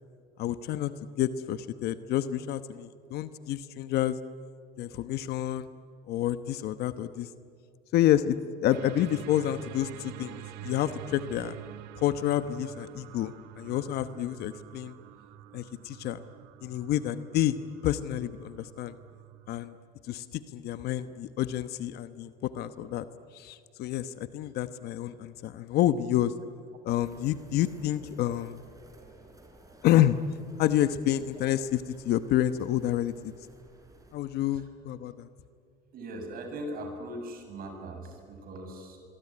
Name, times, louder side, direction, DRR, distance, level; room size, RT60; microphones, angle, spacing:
voice 1, 0.4-0.9 1.2-4.2 4.8-5.7 6.1-7.3 7.9-11.6 12.0-14.9 15.5-16.2 16.6-17.6 17.8-18.9 19.5-19.7 20.1-23.0 23.3-26.3 26.8-28.6 29.8-30.2 30.6-33.3 34.1-35.3, left 12 dB, 70° left, 12 dB, 1.1 m, -29 dB
sound 1, 8.7-19.7, right 13 dB, 85° right, 1.3 m, -47 dB
sound 2, 26.9-34.2, right 2 dB, 20° right, 5.4 m, -54 dB
voice 2, 35.9-39.0, right 1 dB, 60° right, 5 dB, 6.8 m, -39 dB
27.0 x 22.5 x 9.9 m, 2.3 s
cardioid pair, 105°, 17 cm